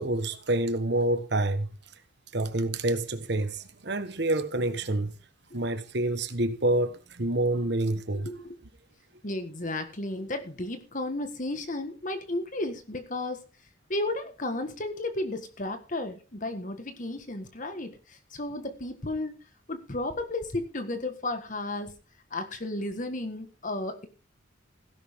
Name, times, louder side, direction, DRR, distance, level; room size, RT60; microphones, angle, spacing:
voice 1, 0.0-1.7 2.3-5.1 5.5-8.3, right 1 dB, 60° right, 1.3 m, -27 dB
voice 2, 8.2-8.6 9.2-13.4 13.9-18.0 18.3-19.3 19.7-21.9 22.3-24.1, left 2 dB, 40° left, 1.6 m, -33 dB
17.0 x 11.0 x 3.6 m
head